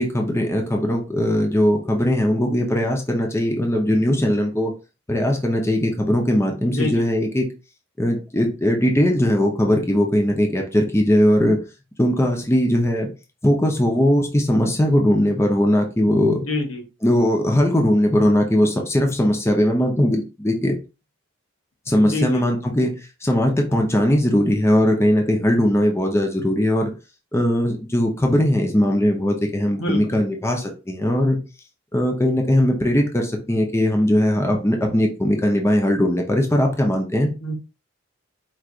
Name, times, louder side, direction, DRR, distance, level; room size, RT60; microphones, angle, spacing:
voice 1, 0.0-4.7 5.1-7.5 8.0-11.6 12.0-13.1 13.4-16.4 17.0-20.8 21.9-22.9 23.2-26.9 27.3-31.4 31.9-37.3, left 1 dB, 15° left, 2 dB, 0.7 m, -19 dB
voice 2, 6.7-7.1 16.4-16.8 22.0-22.4 23.7-23.8 29.8-30.2 37.4-37.5, left 2 dB, 80° left, 2 dB, 1.2 m, -26 dB
4.7 x 3.2 x 2.5 m, 0.30 s
head